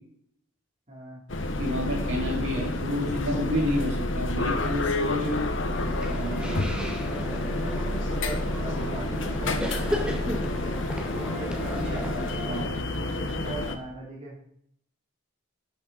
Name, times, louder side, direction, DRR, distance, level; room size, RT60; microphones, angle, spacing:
voice 1, 0.9-1.2 5.2-5.4 6.5-6.9 7.5-12.1 12.4-14.5, right 2 dB, 35° right, -4 dB, 3.4 m, -40 dB
sound 1, 1.3-13.8, left 2 dB, 65° left, 1.2 m, -29 dB
voice 2, 1.6-5.4 6.1-6.6 11.9-12.0 12.5-12.7, left 1 dB, 65° right, -2 dB, 4.7 m, -30 dB
sound 2, 5.7-12.6, equal, 5° right, 1.6 m, -35 dB
12.0 x 9.5 x 4.1 m, 0.67 s
head